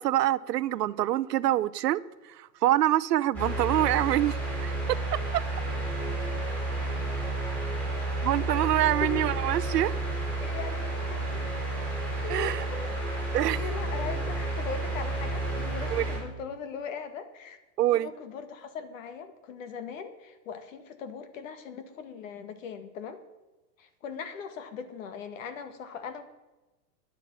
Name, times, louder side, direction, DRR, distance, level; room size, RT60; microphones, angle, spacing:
voice 1, 0.0-2.0 2.6-5.0 8.2-9.9 12.3-12.6 13.3-13.6 15.9-16.0 17.8-18.1, right 13 dB, 85° right, 0.8 m, -25 dB
sound 1, 3.3-16.2, right 2 dB, 5° left, 4.5 m, -31 dB
voice 2, 10.4-11.5 12.2-17.6 17.9-23.2 23.8-26.2, left 6 dB, 55° left, 1.9 m, -40 dB
10.5 x 10.0 x 8.7 m
supercardioid pair, 165°, 46 cm